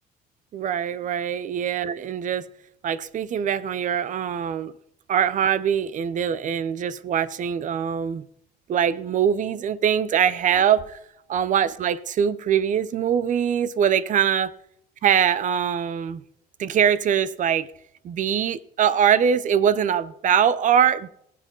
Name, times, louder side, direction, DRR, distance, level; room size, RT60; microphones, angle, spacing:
voice 1, 0.5-2.5 2.8-4.7 5.1-8.2 8.7-11.0 11.3-14.5 15.0-16.2 16.6-17.7 18.0-21.1, right 8 dB, 50° right, 0.7 m, -22 dB
20.0 x 7.6 x 3.9 m
cardioid pair, 110°, 17 cm